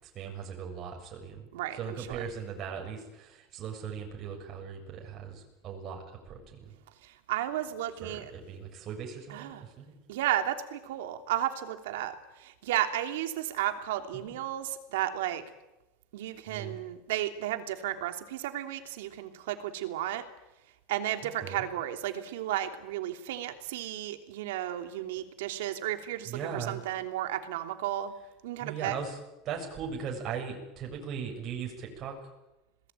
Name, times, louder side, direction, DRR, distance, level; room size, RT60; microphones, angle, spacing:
voice 1, 0.0-1.4 1.7-6.7 8.0-9.8 14.3-14.4 16.5-16.8 21.4-21.7 26.2-26.8 28.6-29.2 29.4-32.1, right 7 dB, 40° right, 0 dB, 7.4 m, -39 dB
voice 2, 1.5-2.2 7.0-8.3 9.3-9.6 10.1-15.4 16.1-20.2 20.9-28.1 28.4-29.0, right 12 dB, 85° right, 7 dB, 3.1 m, -33 dB
27.5 x 20.0 x 9.3 m, 1.0 s
supercardioid pair, 125°, 0 cm